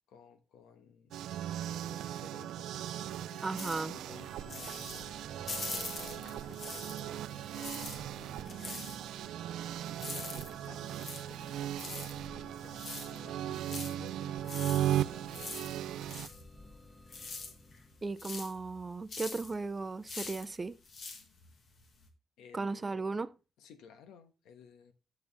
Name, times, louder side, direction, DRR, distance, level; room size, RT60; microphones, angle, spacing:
voice 1, 0.1-8.9 9.8-15.9 22.4-23.0 23.6-24.9, left 7 dB, 85° left, 1.2 m, -56 dB
sound 1, 1.1-16.3, right 12 dB, 80° right, 0.3 m, -37 dB
voice 2, 3.4-3.9 18.0-20.8 22.5-23.3, right 3 dB, 25° right, 0.5 m, -36 dB
sound 2, 3.6-7.2 7.4-22.1, left 4 dB, 50° left, 1.8 m, -45 dB
sound 3, 3.7-18.4, left 1 dB, 5° left, 0.9 m, -56 dB
10.5 x 6.7 x 3.4 m
cardioid pair, 90°, 0 cm